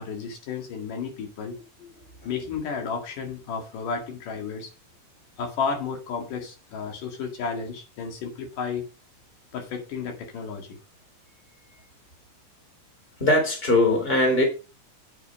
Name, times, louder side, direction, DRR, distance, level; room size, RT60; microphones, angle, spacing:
voice 1, 0.0-1.6 2.2-4.7 5.4-8.9 9.5-10.8, left 5 dB, 80° left, 3.7 m, -32 dB
voice 2, 13.2-14.4, left 1 dB, 15° left, 3.5 m, -21 dB
8.7 x 7.2 x 4.9 m
omnidirectional pair, 3.7 m